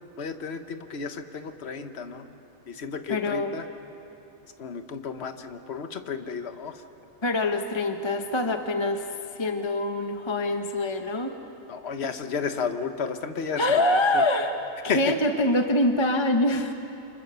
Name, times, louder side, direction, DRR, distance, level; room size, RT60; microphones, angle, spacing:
voice 1, 0.2-2.3 2.7-3.7 4.6-6.8 11.7-13.8 14.1-14.2 14.9-15.0, left 6 dB, 50° left, 8 dB, 1.4 m, -32 dB
voice 2, 3.1-3.5 7.2-11.3 13.6-14.5 14.8-16.7, left 1 dB, 20° left, 5 dB, 0.9 m, -25 dB
29.5 x 25.5 x 6.9 m, 2.9 s
omnidirectional pair, 1.5 m